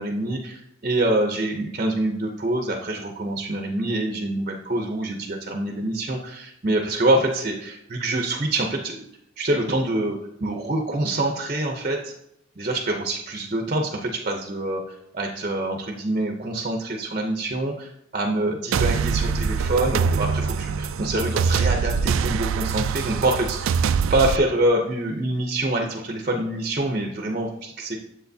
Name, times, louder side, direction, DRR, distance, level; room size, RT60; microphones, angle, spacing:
voice 1, 0.0-9.1 9.4-12.1 12.6-28.0, right 1 dB, 35° right, 2 dB, 0.7 m, -25 dB
sound 1, 18.7-24.4, right 5 dB, 75° right, 0.3 m, -23 dB
10.5 x 7.4 x 2.7 m, 0.81 s
head